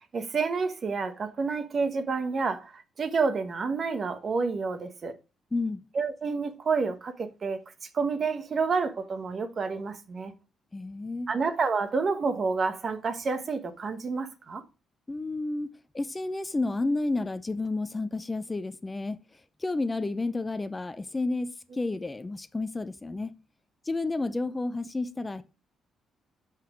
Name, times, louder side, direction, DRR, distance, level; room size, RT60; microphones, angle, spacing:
voice 1, 0.1-5.1 5.9-7.6 7.9-10.3 11.3-14.6, right 4 dB, 45° right, 1.1 m, -29 dB
voice 2, 5.5-5.8 10.7-11.3 15.1-19.2 19.6-23.3 23.9-25.4, left 2 dB, 20° left, 0.6 m, -31 dB
5.7 x 5.6 x 6.0 m
cardioid pair, 90°, 0 cm